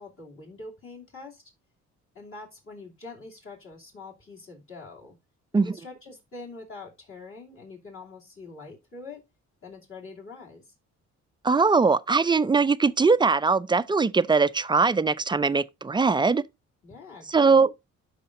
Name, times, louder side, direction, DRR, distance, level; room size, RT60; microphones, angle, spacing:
voice 1, 0.0-1.4 2.1-5.2 5.5-9.2 9.6-10.7 16.8-17.6, left 3 dB, 45° left, 2.6 m, -44 dB
voice 2, 11.4-16.4 17.3-17.7, right 4 dB, 15° right, 0.3 m, -21 dB
12.5 x 5.0 x 2.5 m
cardioid pair, 90°, 30 cm